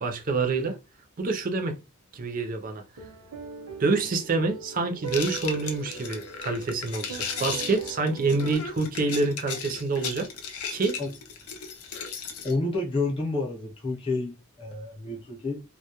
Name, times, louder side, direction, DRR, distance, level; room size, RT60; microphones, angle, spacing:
voice 1, 0.0-0.8 1.2-1.8 2.1-2.8 3.8-10.3 10.7-11.0, right 3 dB, 40° right, 0.5 m, -27 dB
sound 1, 3.0-8.6, right 7 dB, 80° right, 0.8 m, -41 dB
sound 2, 5.1-12.6, left 6 dB, 85° left, 0.5 m, -36 dB
voice 2, 12.4-15.6, left 2 dB, 25° left, 0.7 m, -29 dB
2.2 x 2.1 x 2.8 m
head